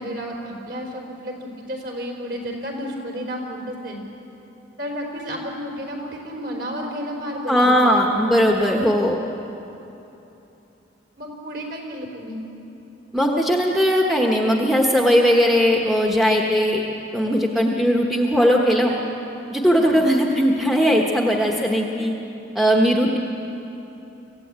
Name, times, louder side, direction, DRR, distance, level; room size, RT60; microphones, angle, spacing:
voice 1, 0.0-4.0 4.8-8.6 11.2-12.4 19.8-20.0 21.5-21.8, equal, 50° right, 0 dB, 4.2 m, -32 dB
voice 2, 7.5-9.2 13.1-16.8 17.1-18.9 19.5-22.1 22.5-23.2, equal, ahead, 0 dB, 1.2 m, -18 dB
26.0 x 15.5 x 8.9 m, 3.0 s
head